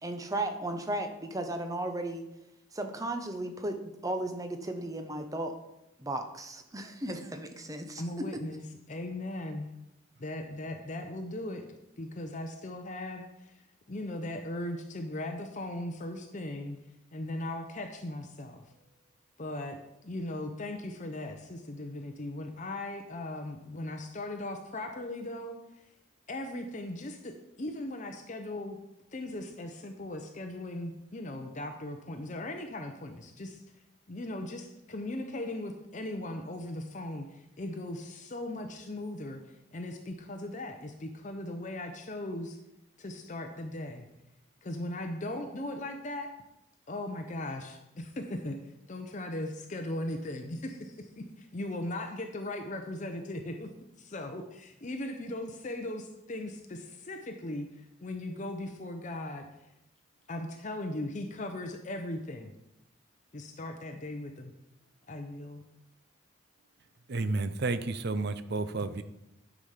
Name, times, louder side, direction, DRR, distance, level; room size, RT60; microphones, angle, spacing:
voice 1, 0.0-2.2 2.7-5.6 6.0-8.0, right 1 dB, 15° right, 6 dB, 0.7 m, -35 dB
voice 2, 8.0-9.7 10.2-16.8 17.1-18.6 19.4-19.8 20.0-25.9 26.3-28.8 29.1-33.6 34.1-42.6 43.0-44.1 44.6-46.3 46.9-59.5 60.3-62.5 63.3-64.5 65.1-65.6, left 1 dB, 35° left, 5 dB, 0.6 m, -38 dB
voice 3, 67.1-69.0, right 3 dB, 50° right, 12 dB, 0.5 m, -31 dB
9.9 x 5.0 x 5.7 m, 0.90 s
head